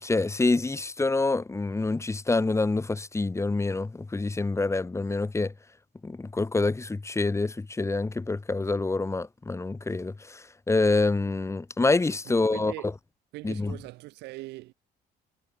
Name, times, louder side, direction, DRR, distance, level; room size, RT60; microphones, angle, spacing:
voice 1, 0.0-5.5 6.0-12.9 13.4-13.8, left 3 dB, 15° left, 3.7 m, -26 dB
voice 2, 12.3-12.9 13.3-14.7, right 19 dB, 85° right, 3.7 m, -41 dB
cardioid pair, 110°, 17 cm